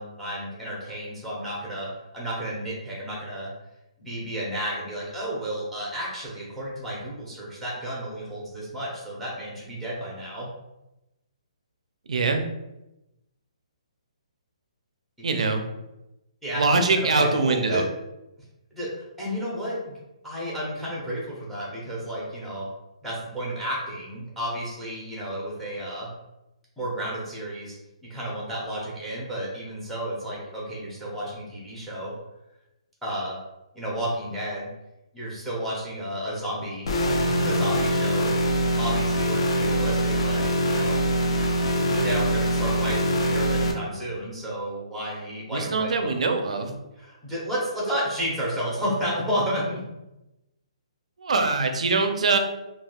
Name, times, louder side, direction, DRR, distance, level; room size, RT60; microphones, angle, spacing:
voice 1, 0.0-3.5 4.0-10.5 15.4-15.5 16.4-17.8 18.7-20.0 20.2-22.7 23.0-26.1 26.8-27.8 28.1-32.1 33.0-33.4 33.7-34.7 35.1-36.9 37.3-38.3 38.8-41.0 41.6-46.1 47.0-49.8, equal, ahead, -5 dB, 0.7 m, -32 dB
voice 2, 12.1-12.4 15.2-15.6 16.6-17.8 45.5-46.7 51.2-52.4, right 3 dB, 70° right, 6 dB, 0.5 m, -23 dB
sound 1, 36.9-43.7, equal, 55° left, 0.5 m, -23 dB
3.3 x 2.3 x 2.3 m, 0.94 s
hypercardioid pair, 165°, 4 cm